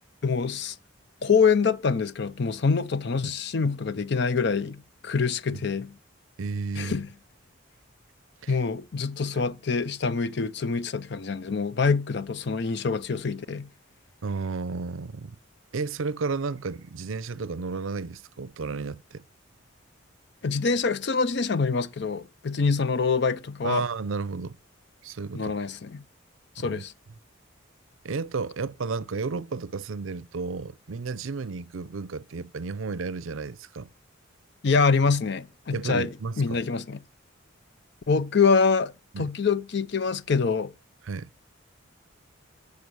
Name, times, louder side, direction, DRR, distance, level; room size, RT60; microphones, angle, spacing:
voice 1, 0.2-0.8 1.2-5.9 6.8-7.1 8.5-13.7 20.4-23.8 25.3-26.0 26.6-26.9 34.6-36.1 36.4-37.0 38.1-40.7, left 5 dB, 55° left, 0.5 m, -25 dB
voice 2, 6.4-7.0 8.4-8.6 14.2-15.4 15.7-19.2 23.6-24.6 25.0-25.6 26.6-26.8 28.0-33.9 35.7-36.6 39.1-39.3 41.0-41.3, right 4 dB, 75° right, 0.5 m, -32 dB
6.9 x 6.6 x 6.3 m
head